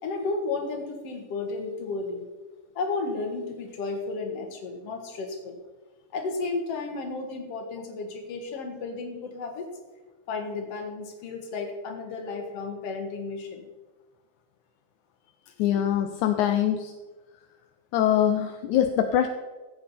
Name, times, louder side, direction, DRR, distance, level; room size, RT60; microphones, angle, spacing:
voice 1, 0.0-2.2 2.8-5.6 6.1-9.7 10.3-13.7 15.4-15.5, left 3 dB, 55° left, 3 dB, 2.6 m, -33 dB
voice 2, 15.6-16.9 17.9-19.3, left 10 dB, 80° left, 7 dB, 2.0 m, -23 dB
15.5 x 8.7 x 4.3 m, 1.2 s
omnidirectional pair, 3.5 m